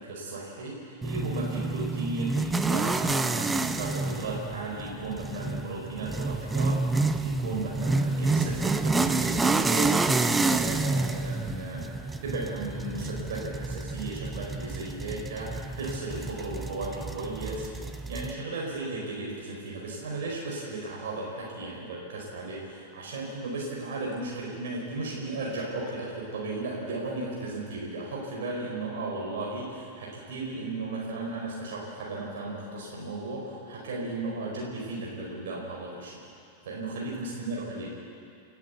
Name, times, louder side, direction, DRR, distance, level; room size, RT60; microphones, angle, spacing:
voice 1, 0.0-9.9 10.3-11.9 12.2-17.7 18.1-36.2 36.6-37.9, right 2 dB, 60° right, -3 dB, 4.8 m, -35 dB
sound 1, 1.0-18.3, right 3 dB, 10° right, 0.8 m, -29 dB
29.5 x 11.0 x 8.3 m, 2.4 s
figure-of-eight pair, 90°, 0 cm